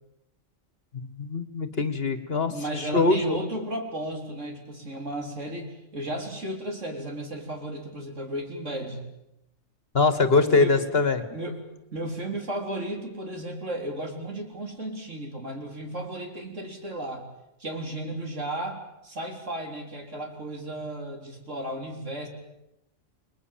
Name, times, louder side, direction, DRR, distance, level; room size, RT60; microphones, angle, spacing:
voice 1, 0.9-3.4 9.9-11.2, left 3 dB, 50° left, 11 dB, 1.9 m, -23 dB
voice 2, 2.5-9.1 10.3-10.8 11.3-11.6 11.9-17.3 17.6-22.3, right 1 dB, 65° right, 3 dB, 4.5 m, -34 dB
29.5 x 21.5 x 7.5 m, 0.86 s
omnidirectional pair, 1.3 m